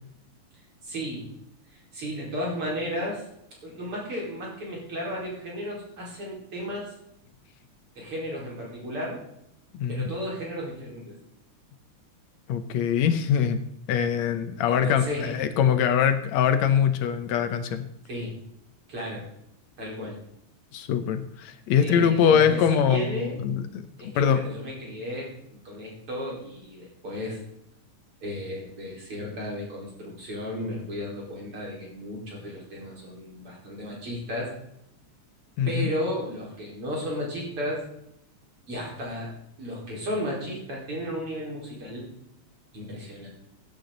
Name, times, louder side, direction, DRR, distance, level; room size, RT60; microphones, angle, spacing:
voice 1, 0.8-1.3 1.7-3.3 3.6-6.9 8.0-9.3 9.9-11.2 14.7-15.4 18.1-18.4 18.9-19.2 19.8-20.2 21.8-23.4 24.0-25.3 25.7-27.4 28.2-34.5 35.7-37.8 38.7-39.3 39.6-42.1 42.7-43.3, equal, 45° right, -3 dB, 5.4 m, -34 dB
voice 2, 9.7-10.1 12.5-17.8 20.7-24.4 35.6-35.9, left 8 dB, 70° left, 10 dB, 2.1 m, -23 dB
16.0 x 10.5 x 3.9 m, 0.76 s
omnidirectional pair, 3.5 m